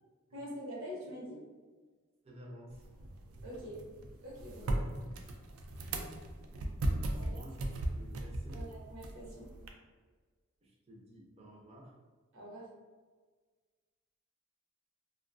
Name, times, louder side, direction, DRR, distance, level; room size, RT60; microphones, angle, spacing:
voice 1, 0.3-1.4 3.4-3.8 4.2-5.1 7.2-7.4 8.5-9.5 12.3-12.7, equal, 65° right, -4 dB, 0.8 m, -45 dB
voice 2, 2.2-2.9 4.5-4.8 6.9-8.7 10.6-11.9, equal, 30° right, -2 dB, 0.5 m, -52 dB
sound 1, 2.7-9.7, right 1 dB, 85° right, 0.4 m, -38 dB
2.5 x 2.2 x 2.5 m, 1.4 s
head